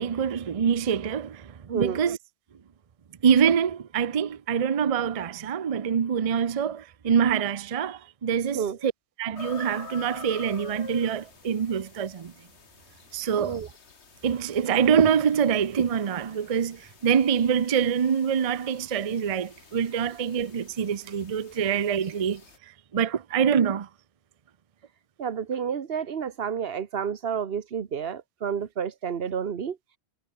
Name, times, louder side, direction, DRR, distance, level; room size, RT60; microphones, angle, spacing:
voice 1, 0.0-2.2 3.2-8.9 9.2-12.3 13.1-13.6 14.2-22.4 22.9-23.9, right 7 dB, 40° right, 0.6 m, -25 dB
voice 2, 1.7-2.0 8.5-8.8 13.4-13.7 25.2-29.8, right 7 dB, 65° right, 1.3 m, -30 dB
sound 1, 9.4-22.6, left 5 dB, 90° left, 2.1 m, -48 dB
omnidirectional pair, 1.1 m